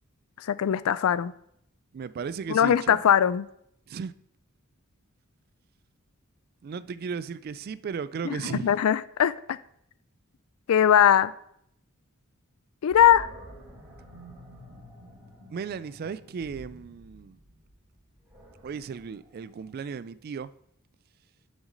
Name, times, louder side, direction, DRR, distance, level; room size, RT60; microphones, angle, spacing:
voice 1, 0.4-1.3 2.5-3.5 8.3-9.6 10.7-11.3 12.8-13.3, left 9 dB, 80° left, 0.4 m, -21 dB
voice 2, 1.9-3.0 3.9-4.1 6.6-8.7 15.5-17.4 18.6-20.5, right 6 dB, 45° right, 0.3 m, -35 dB
Animal, 12.9-20.0, right 1 dB, 10° right, 2.8 m, -49 dB
6.4 x 6.1 x 5.1 m
head